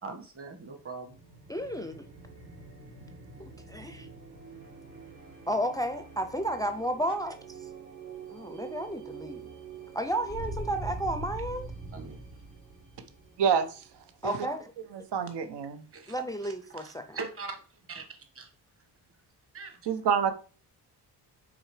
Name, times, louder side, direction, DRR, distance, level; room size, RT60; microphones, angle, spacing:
voice 1, 0.0-1.1 11.9-12.2 15.9-16.1 16.4-18.5 19.5-19.8, right 4 dB, 35° right, 1.4 m, -42 dB
sound 1, 1.1-14.5, right 3 dB, 65° right, 3.2 m, -44 dB
voice 2, 1.5-2.1 3.4-4.1 5.5-7.7 8.3-9.5 9.9-11.7 14.2-14.7 16.1-17.2, right 1 dB, 10° left, 0.4 m, -32 dB
voice 3, 13.4-13.8 14.2-14.3 14.9-15.8 19.9-20.3, right 7 dB, 85° right, 1.1 m, -27 dB
6.2 x 4.1 x 4.9 m
wide cardioid pair, 150°, 40 cm